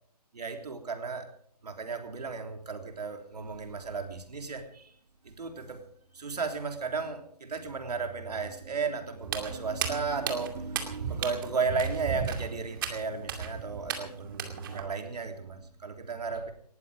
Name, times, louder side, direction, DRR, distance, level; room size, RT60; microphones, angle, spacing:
voice 1, 0.3-1.3 1.6-4.9 5.2-5.8 6.1-16.5, right 4 dB, 70° right, 5 dB, 3.4 m, -34 dB
Walk footsteps, 9.2-14.8, right 7 dB, 30° right, 2.4 m, -35 dB
19.0 x 14.5 x 5.0 m, 0.62 s
hypercardioid pair, 155°, 21 cm